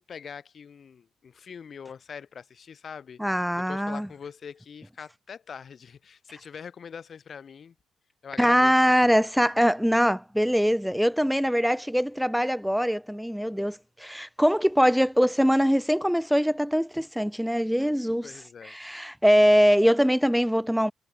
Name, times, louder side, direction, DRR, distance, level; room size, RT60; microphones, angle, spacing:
voice 1, 0.0-3.2 3.6-7.8 8.2-9.0 18.2-18.8, left 7 dB, 50° left, 3.5 m, -43 dB
voice 2, 3.2-4.1 8.4-18.3 18.6-20.9, equal, ahead, 1.6 m, -22 dB
cardioid pair, 90°, 0 cm